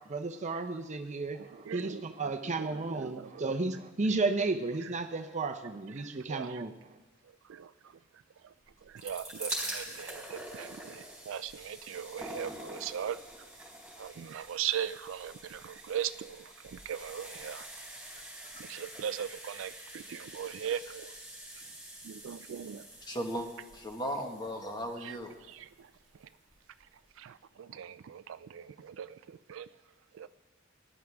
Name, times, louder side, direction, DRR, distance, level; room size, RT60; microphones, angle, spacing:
voice 1, 0.1-6.7, right 3 dB, 35° right, 0.7 m, -33 dB
voice 2, 1.7-3.4 4.8-4.9 6.3-6.6 7.5-7.7 8.4-8.5 8.8-13.2 14.0-17.7 18.6-21.1 22.0-22.9 25.0-25.9 27.2-29.7 30.1-30.3, right 9 dB, 70° right, 0.4 m, -39 dB
sound 1, 8.7-25.7 26.5-26.6 26.8-26.9, right 1 dB, 5° right, 4.5 m, -45 dB
voice 3, 23.0-23.5 23.7-25.3, equal, 20° left, 1.5 m, -36 dB
18.5 x 11.0 x 3.5 m
head